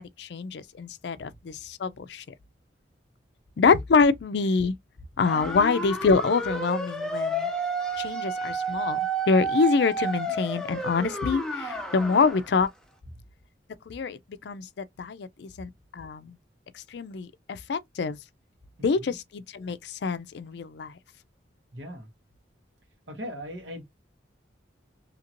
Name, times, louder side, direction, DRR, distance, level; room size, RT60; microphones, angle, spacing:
voice 1, 0.0-2.2 3.6-4.7 5.2-7.5 8.0-9.0 9.3-12.7 13.9-16.4 16.7-18.2 18.8-20.9, left 4 dB, 65° left, 0.4 m, -26 dB
sound 1, 5.2-12.4, right 2 dB, 5° left, 0.5 m, -31 dB
voice 2, 21.7-22.1 23.1-23.8, equal, 75° right, 1.3 m, -38 dB
2.8 x 2.5 x 2.9 m
head